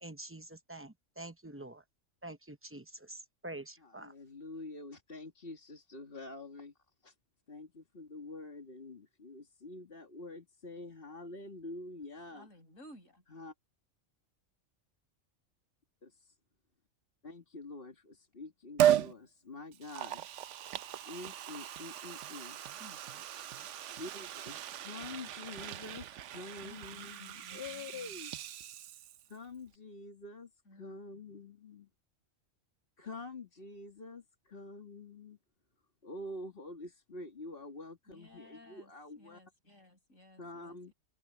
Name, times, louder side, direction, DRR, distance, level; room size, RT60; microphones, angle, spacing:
voice 1, 0.0-1.8 2.2-4.1, right 2 dB, 15° right, 0.6 m, -46 dB
voice 2, 3.8-6.7 7.0-7.1 7.5-12.5 13.3-13.5 16.0-16.4 17.2-20.3 21.0-22.6 23.9-28.4 29.3-31.9 33.0-35.4 36.0-39.4 40.4-40.9, left 2 dB, 45° left, 2.5 m, -47 dB
voice 3, 12.3-13.2 22.8-23.0 26.6-28.1 30.7-31.0 38.1-38.9 39.2-40.9, left 1 dB, 75° left, 5.8 m, -57 dB
Liquid, 18.8-19.1 19.7-29.4 29.7-29.8, right 11 dB, 70° right, 1.0 m, -36 dB
omnidirectional pair, 1.4 m